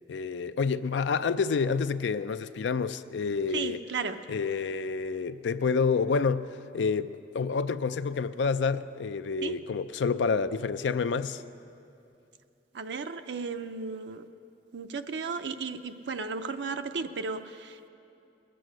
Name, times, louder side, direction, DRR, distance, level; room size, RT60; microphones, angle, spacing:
voice 1, 0.1-3.8 4.3-11.4, left 5 dB, 85° left, 0.4 m, -28 dB
voice 2, 3.5-4.2 9.4-9.6 12.7-14.3 14.7-17.9, right 4 dB, 70° right, 0.5 m, -34 dB
21.0 x 7.7 x 6.5 m
head